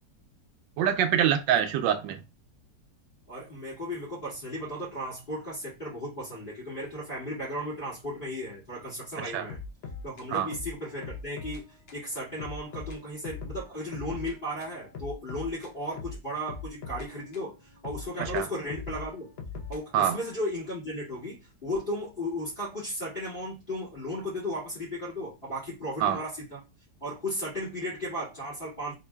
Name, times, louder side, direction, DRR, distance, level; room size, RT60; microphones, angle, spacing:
voice 1, 0.8-2.2 9.3-9.5 10.3-10.5 18.2-18.5 19.9-20.2 26.0-26.2, right 9 dB, 90° right, 1.3 m, -25 dB
voice 2, 3.3-9.6 10.0-19.3 19.7-26.6 27.0-28.9, equal, 30° left, 2.3 m, -35 dB
sound 1, 9.5-11.6 11.9-12.0 12.4-14.3 14.6-17.5 17.8-20.4, left 4 dB, 55° left, 0.7 m, -41 dB
3.8 x 3.6 x 2.2 m
omnidirectional pair, 1.9 m